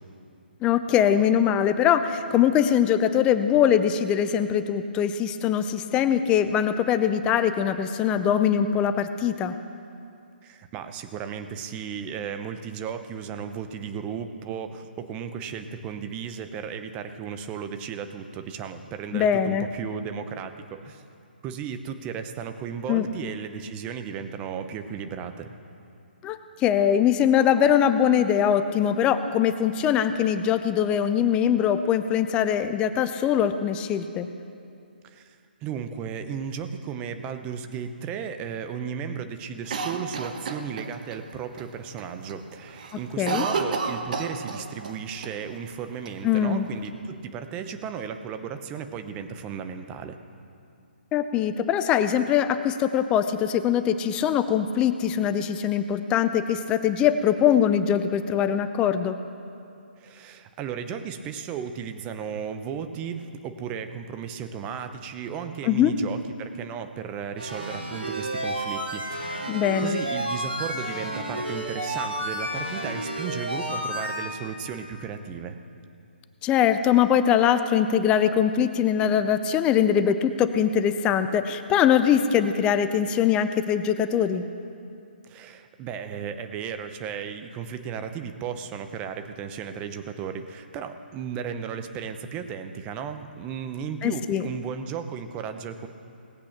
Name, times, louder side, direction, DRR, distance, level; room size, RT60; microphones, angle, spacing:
voice 1, 0.6-9.6 19.1-19.7 22.9-23.1 26.2-34.3 43.2-43.5 46.2-46.7 51.1-59.2 65.6-65.9 69.5-70.0 76.4-84.4 94.0-94.5, left 9 dB, 15° left, 10 dB, 0.5 m, -22 dB
voice 2, 10.4-21.0 21.4-25.6 35.0-50.2 60.0-75.6 85.2-95.9, right 7 dB, 20° right, 8 dB, 0.8 m, -35 dB
Cough, 39.7-41.2 41.6-41.7 42.0-42.4 42.7-45.0 45.2-45.3 46.1-46.9, right 4 dB, 50° right, 1.2 m, -30 dB
sound 1, 67.4-74.2, right 1 dB, 80° right, 2.6 m, -31 dB
18.5 x 8.4 x 5.9 m, 2.5 s
figure-of-eight pair, 145°, 6 cm